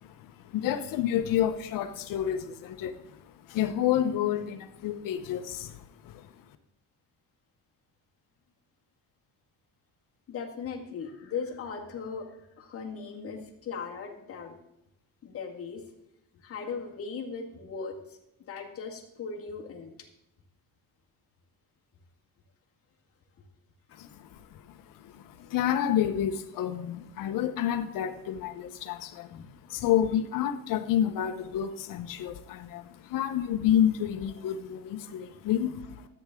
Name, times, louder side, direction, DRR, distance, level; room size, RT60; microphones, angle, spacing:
voice 1, 0.0-3.2 3.5-6.3 24.0-24.6 25.0-29.3 29.7-36.1, left 10 dB, 60° left, 0.9 m, -29 dB
voice 2, 10.3-12.3 12.6-14.6 15.2-15.8 16.4-19.9 29.3-29.5 34.3-34.4, left 5 dB, 40° left, 1.8 m, -38 dB
13.5 x 8.8 x 3.7 m
cardioid pair, 170°, 36 cm